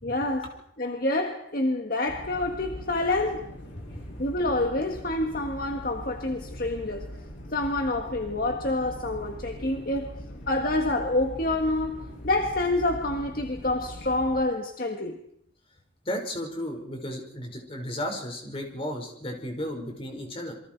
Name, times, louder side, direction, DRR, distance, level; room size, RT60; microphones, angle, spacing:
voice 1, 0.0-3.5 4.2-7.1 7.5-15.2, left 2 dB, 50° left, 1.6 m, -28 dB
sound 1, 2.1-14.4, equal, 85° left, 5.6 m, -41 dB
voice 2, 16.0-20.5, equal, 30° left, 5.1 m, -34 dB
28.0 x 23.5 x 4.6 m
head